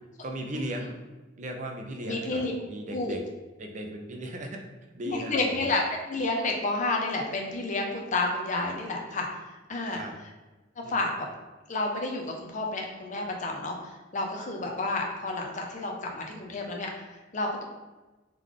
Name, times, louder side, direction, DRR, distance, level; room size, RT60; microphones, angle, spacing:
voice 1, 0.2-0.9 1.4-3.2 3.6-4.6 4.9-5.7 9.9-10.1 10.8-11.1, right 1 dB, 40° right, 3 dB, 0.5 m, -37 dB
voice 2, 2.1-2.5 2.9-3.2 5.0-9.4 9.7-10.0 10.8-11.1 11.7-17.6, left 2 dB, 40° left, 1 dB, 0.6 m, -30 dB
3.7 x 3.2 x 3.6 m, 1.2 s
head